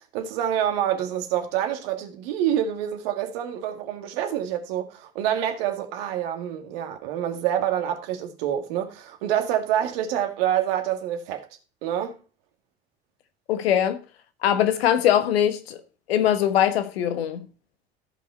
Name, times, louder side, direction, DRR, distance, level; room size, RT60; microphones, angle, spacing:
voice 1, 0.0-11.5 11.8-12.2, right 10 dB, 65° right, 2.0 m, -27 dB
voice 2, 13.5-14.0 14.4-15.8 16.1-17.4, left 10 dB, 75° left, 1.3 m, -21 dB
14.0 x 5.7 x 4.3 m
figure-of-eight pair, 65°, 31 cm